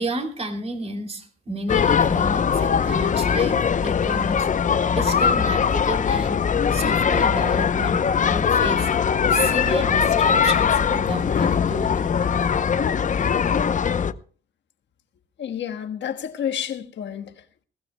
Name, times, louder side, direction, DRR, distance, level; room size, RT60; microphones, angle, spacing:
voice 1, 0.0-4.5 4.9-6.4 6.7-8.0 8.3-8.9 9.3-12.1, right 2 dB, 30° right, 3.0 m, -31 dB
sound 1, 1.7-14.1, left 7 dB, 40° left, 0.7 m, -21 dB
voice 2, 15.4-17.6, left 9 dB, 65° left, 1.4 m, -30 dB
21.0 x 15.5 x 2.2 m
cardioid pair, 90°, 20 cm